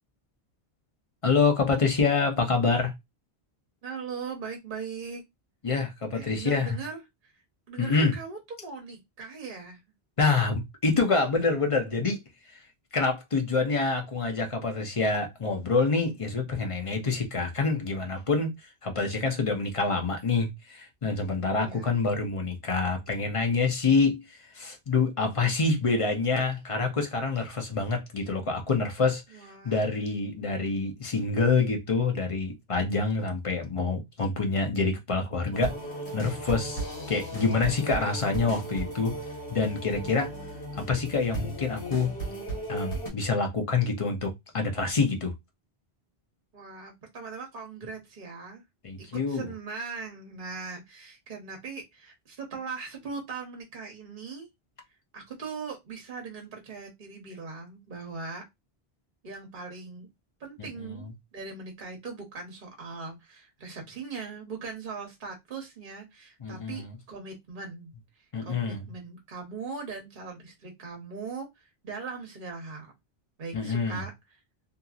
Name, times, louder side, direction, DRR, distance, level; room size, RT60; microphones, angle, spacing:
voice 1, 1.2-2.9 5.6-6.8 7.8-8.1 10.2-12.2 12.5-12.6 12.9-35.7 36.1-39.1 39.5-40.3 40.7-42.1 42.7-45.3 48.8-49.5 60.6-61.1 66.4-66.9 68.3-68.8 73.5-74.0, left 4 dB, 35° left, 0.7 m, -27 dB
voice 2, 3.8-5.2 6.1-7.3 7.7-9.8 21.5-22.0 29.3-29.9 46.5-48.6 49.3-54.5 55.1-58.4 59.2-60.1 60.4-67.9 68.4-72.9 73.4-74.1, right 4 dB, 55° right, 1.1 m, -40 dB
sound 1, 35.5-43.1, right 1 dB, 60° left, 1.5 m, -36 dB
2.8 x 2.5 x 2.4 m
omnidirectional pair, 1.1 m